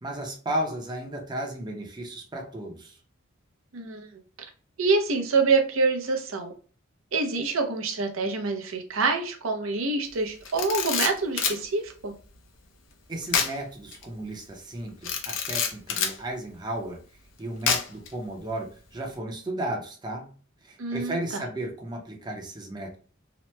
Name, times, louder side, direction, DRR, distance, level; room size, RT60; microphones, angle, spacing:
voice 1, 0.0-3.0 13.1-17.0 17.4-20.3 20.6-23.0, right 1 dB, 20° right, 1 dB, 0.6 m, -34 dB
voice 2, 3.7-4.1 4.8-6.5 7.1-12.1 20.8-21.4, right 3 dB, 85° right, 3 dB, 0.6 m, -26 dB
Camera, 10.4-11.6 13.3-13.6 13.9-14.0 15.0-16.2 17.7-18.1, left 6 dB, 70° left, 0.6 m, -26 dB
2.9 x 2.1 x 3.1 m, 0.41 s
head